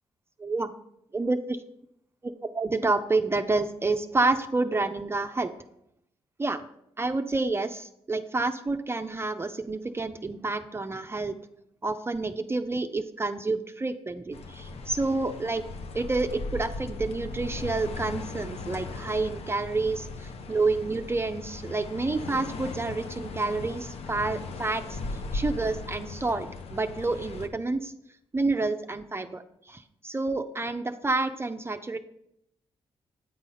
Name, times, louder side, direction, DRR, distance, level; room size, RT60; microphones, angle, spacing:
voice 1, 0.4-0.7 1.1-1.6 2.5-5.5 6.4-6.6 7.0-11.3 11.8-15.7 15.9-25.0 25.3-27.9 28.3-32.0, right 3 dB, 20° right, 7 dB, 0.5 m, -29 dB
sound 1, 14.3-27.5, left 3 dB, 65° left, 0.7 m, -38 dB
9.0 x 4.1 x 5.6 m, 0.78 s
cardioid pair, 70°, 11 cm